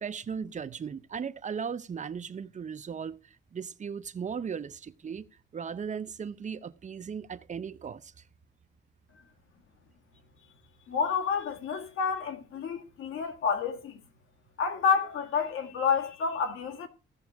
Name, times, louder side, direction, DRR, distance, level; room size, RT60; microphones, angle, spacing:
voice 1, 0.0-3.2 3.5-5.3 5.5-8.1, right 6 dB, 35° right, 0.7 m, -37 dB
voice 2, 10.9-14.0 14.6-16.9, left 6 dB, 80° left, 1.8 m, -29 dB
16.0 x 6.2 x 4.6 m
cardioid pair, 110°, 21 cm